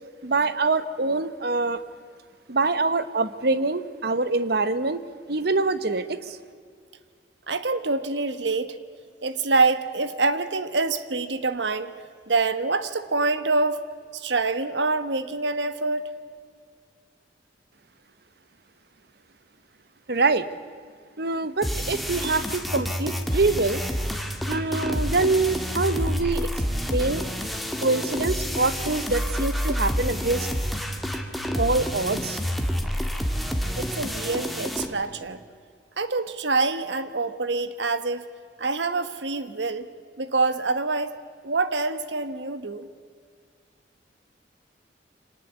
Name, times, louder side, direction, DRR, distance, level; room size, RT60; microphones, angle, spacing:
voice 1, 0.2-1.8 2.5-5.0 5.3-6.4 20.1-20.5 21.2-23.8 24.5-26.5 26.9-27.3 27.8-30.5 31.5-32.4, right 3 dB, 60° right, 13 dB, 1.1 m, -25 dB
voice 2, 7.5-8.8 9.2-11.9 12.3-13.8 14.1-16.1 33.8-35.4 36.0-38.2 38.6-39.9 40.2-41.2 41.4-42.9, right 3 dB, 75° right, 12 dB, 1.3 m, -26 dB
sound 1, 21.6-34.9, equal, ahead, 1.8 m, -28 dB
25.5 x 19.0 x 8.2 m, 2.1 s
head